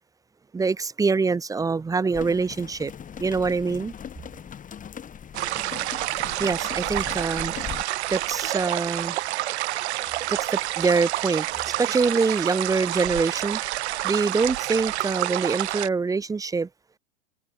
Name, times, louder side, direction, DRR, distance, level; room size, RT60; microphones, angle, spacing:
voice 1, 0.5-2.9 3.2-3.9 6.4-9.2 10.3-13.6 14.0-16.7, right 4 dB, 10° right, 1.0 m, -25 dB
sound 1, 2.1-7.8, left 8 dB, 20° left, 4.2 m, -39 dB
sound 2, 5.3-15.9, right 16 dB, 65° right, 2.0 m, -28 dB
hypercardioid pair, 120°, 35 cm